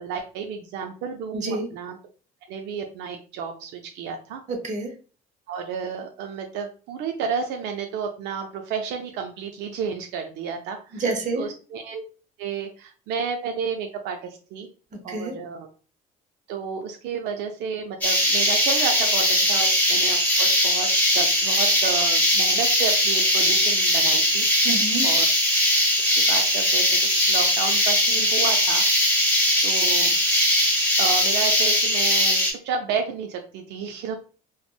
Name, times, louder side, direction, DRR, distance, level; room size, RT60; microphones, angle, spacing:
voice 1, 0.0-2.0 2.5-4.4 5.5-11.0 11.3-12.0 12.4-14.7 15.0-15.7 16.5-20.9 21.1-24.5 25.0-25.3 26.0-28.8 29.6-30.1 31.0-34.2, right 6 dB, 85° right, 4 dB, 0.4 m, -31 dB
voice 2, 1.3-1.7 4.5-4.9 11.0-11.4 15.1-15.3 24.6-25.1, right 3 dB, 45° right, 3 dB, 0.9 m, -27 dB
sound 1, 18.0-32.5, equal, 10° left, 1.0 m, -20 dB
3.4 x 2.0 x 2.2 m, 0.38 s
cardioid pair, 110°, 17 cm